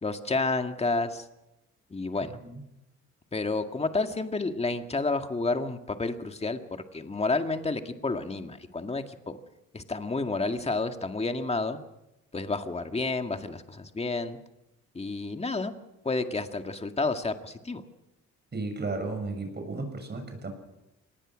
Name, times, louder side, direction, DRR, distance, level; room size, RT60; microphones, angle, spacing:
voice 1, 0.0-1.2 1.9-2.4 3.3-9.4 9.7-11.8 12.3-14.4 14.9-15.7 16.0-17.8, left 3 dB, 20° left, 6 dB, 2.0 m, -30 dB
voice 2, 18.5-20.5, right 3 dB, 35° right, 5 dB, 7.1 m, -34 dB
25.5 x 20.0 x 6.4 m, 0.92 s
cardioid pair, 90°, 30 cm